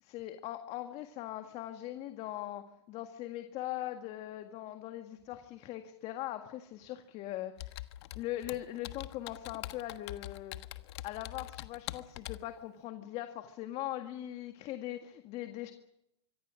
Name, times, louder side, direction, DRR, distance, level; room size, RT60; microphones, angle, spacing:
voice 1, 0.0-7.8 8.2-10.6 11.0-15.7, left 14 dB, 45° left, 7 dB, 1.8 m, -40 dB
Computer keyboard, 7.6-12.5, left 16 dB, 65° left, 1.3 m, -44 dB
25.5 x 23.0 x 6.4 m, 0.83 s
hypercardioid pair, 110°, 15 cm